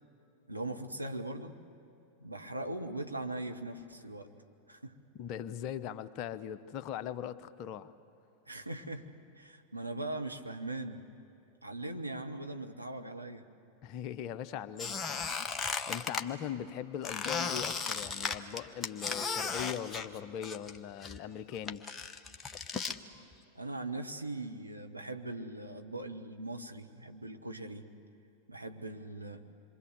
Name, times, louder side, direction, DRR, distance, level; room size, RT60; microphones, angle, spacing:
voice 1, 0.5-1.5 2.2-4.3 4.7-5.0 8.5-9.1 9.3-11.0 11.6-13.4 23.5-27.9 28.5-29.4, right 2 dB, 85° right, 4 dB, 1.4 m, -40 dB
voice 2, 5.1-7.9 13.8-15.4 15.9-21.8, left 9 dB, 40° left, 12 dB, 0.9 m, -40 dB
Squeak, 14.8-16.2 17.0-20.8 21.0-23.0, left 5 dB, 20° left, 1.1 m, -36 dB
27.0 x 23.5 x 8.3 m, 2.8 s
figure-of-eight pair, 90°, 0 cm